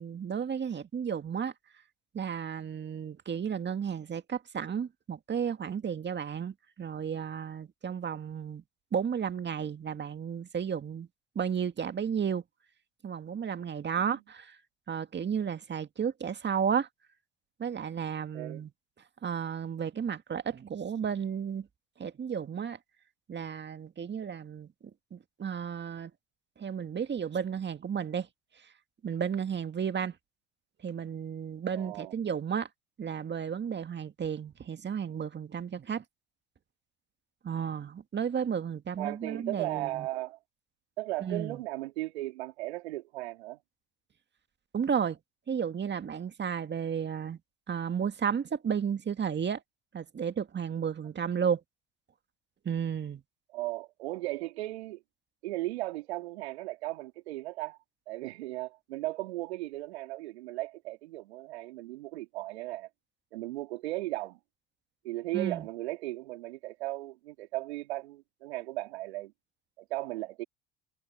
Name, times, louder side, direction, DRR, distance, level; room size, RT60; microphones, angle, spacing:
voice 1, 0.0-1.5 2.1-8.6 8.9-11.1 11.4-12.4 13.0-14.6 14.9-16.9 17.6-18.7 19.2-21.7 22.0-22.8 23.3-24.7 25.1-26.1 26.6-28.3 29.0-30.2 30.8-32.7 33.0-36.0 37.4-40.1 41.2-41.6 44.7-45.2 45.5-47.4 47.7-49.6 49.9-51.6 52.7-53.2 65.3-65.7, right 7 dB, 35° right, 2.1 m, -33 dB
voice 2, 31.7-32.1 39.0-40.4 41.0-43.6 53.5-55.0 55.4-57.8 58.1-62.9 63.3-64.4 65.0-69.3 69.8-70.4, right 18 dB, 80° right, 4.0 m, -36 dB
hypercardioid pair, 65°, 32 cm